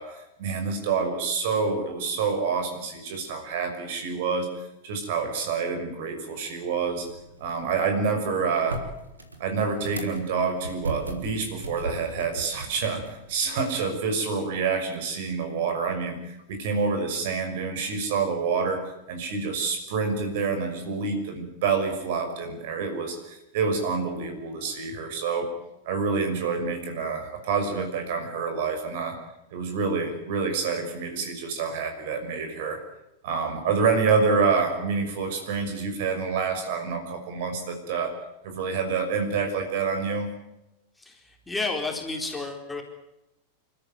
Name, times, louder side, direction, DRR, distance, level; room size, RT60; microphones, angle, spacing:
voice 1, 0.0-7.1 7.4-8.8 9.4-18.8 19.1-25.5 25.9-29.1 29.5-32.8 33.2-38.1 38.4-40.3, right 5 dB, 50° right, 6 dB, 5.9 m, -27 dB
sound 1, 6.7-13.7, right 2 dB, 80° right, 3.4 m, -39 dB
voice 2, 41.0-42.8, left 3 dB, 10° left, 2 dB, 4.1 m, -31 dB
29.5 x 13.5 x 9.4 m, 0.92 s
figure-of-eight pair, 90°, 0 cm